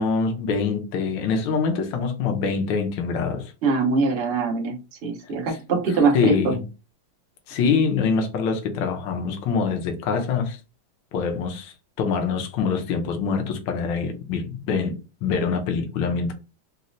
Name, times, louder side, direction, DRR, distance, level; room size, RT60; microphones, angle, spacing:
voice 1, 0.0-3.5 5.5-5.6 6.1-6.6 7.5-10.6 11.1-16.3, left 5 dB, 75° left, 1.3 m, -24 dB
voice 2, 3.6-6.5, right 4 dB, 70° right, 0.6 m, -23 dB
4.1 x 2.1 x 2.5 m
omnidirectional pair, 2.2 m